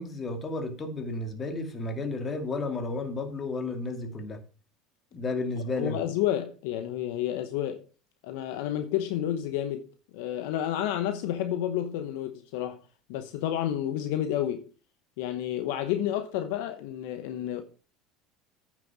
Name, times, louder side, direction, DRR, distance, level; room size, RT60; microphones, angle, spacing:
voice 1, 0.0-4.4 5.1-6.0, left 2 dB, 30° left, 2.2 m, -32 dB
voice 2, 5.8-7.8 8.2-9.9 10.1-12.8 13.1-14.7 15.2-17.6, left 11 dB, 75° left, 0.9 m, -30 dB
9.2 x 6.5 x 5.0 m
supercardioid pair, 90°, 0 cm